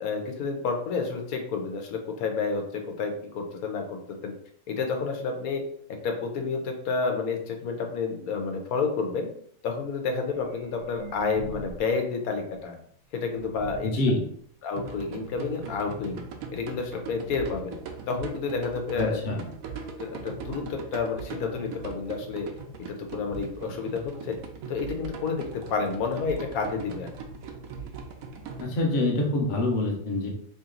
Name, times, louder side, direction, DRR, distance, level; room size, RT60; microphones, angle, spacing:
voice 1, 0.0-4.3 4.7-5.7 6.0-9.3 9.6-12.8 13.1-14.0 14.6-16.2 16.5-17.8 18.1-19.2 20.0-22.5 22.9-24.4 24.7-27.1, left 4 dB, 90° left, 4 dB, 1.2 m, -30 dB
sound 1, 10.3-12.0 12.3-12.4 12.9-13.0 13.4-14.0 14.8-14.9 15.1-15.2 15.5-15.8 16.6-16.7 17.0-17.1 17.7-17.8 18.1-18.2, right 6 dB, 60° right, 0.6 m, -41 dB
voice 2, 13.8-14.2 18.9-19.4 28.6-30.3, left 2 dB, 40° left, 0 dB, 0.8 m, -26 dB
sound 2, 14.7-28.6, right 5 dB, 80° right, 1.0 m, -40 dB
3.1 x 2.9 x 3.7 m, 0.63 s
omnidirectional pair, 1.5 m